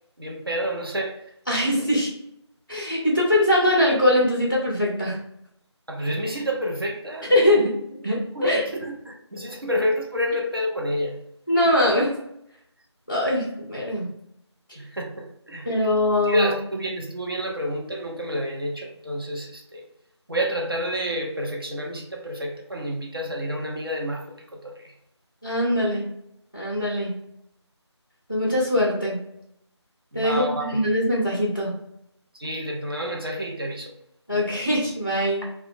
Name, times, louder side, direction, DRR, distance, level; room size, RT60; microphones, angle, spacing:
voice 1, 0.2-1.2 5.9-7.5 8.3-11.2 14.8-15.7 16.2-19.9 20.3-24.3 24.5-24.9 30.1-30.8 32.4-33.9, equal, 55° right, 0 dB, 0.6 m, -29 dB
voice 2, 1.5-2.1 2.7-5.2 7.3-7.8 8.0-8.6 11.5-12.2 13.1-14.1 15.6-16.5 25.4-26.0 26.5-27.1 28.3-29.2 30.1-31.7 34.3-35.5, left 1 dB, 20° left, -4 dB, 0.4 m, -22 dB
3.0 x 2.1 x 3.3 m, 0.75 s
figure-of-eight pair, 165°, 15 cm